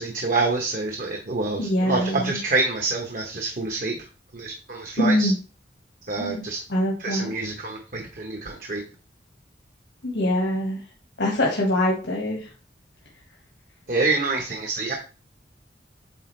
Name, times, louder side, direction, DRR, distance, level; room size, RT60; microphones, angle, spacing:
voice 1, 0.0-4.0 4.3-5.3 6.1-6.6 7.0-8.8 13.9-14.9, right 3 dB, 50° right, 2 dB, 1.0 m, -27 dB
voice 2, 1.6-2.4 5.0-5.4 6.2-6.4 6.7-7.3 10.0-10.8 11.2-12.4, left 1 dB, 80° left, -2 dB, 1.6 m, -23 dB
8.3 x 4.0 x 3.2 m, 0.35 s
head